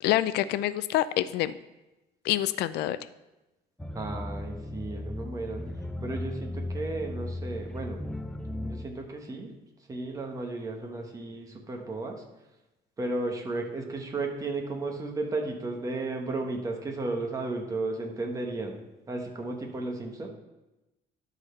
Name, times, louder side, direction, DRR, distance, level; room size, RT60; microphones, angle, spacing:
voice 1, 0.0-1.5 2.2-3.0, left 13 dB, 75° left, 15 dB, 0.4 m, -26 dB
sound 1, 3.8-8.9, left 1 dB, 5° left, 0.4 m, -36 dB
voice 2, 3.9-5.6 6.0-8.0 8.6-9.6 9.9-12.2 13.0-18.8 19.1-20.3, right 2 dB, 20° right, 2 dB, 1.2 m, -34 dB
11.5 x 4.1 x 5.5 m, 1.0 s
cardioid pair, 145°, 17 cm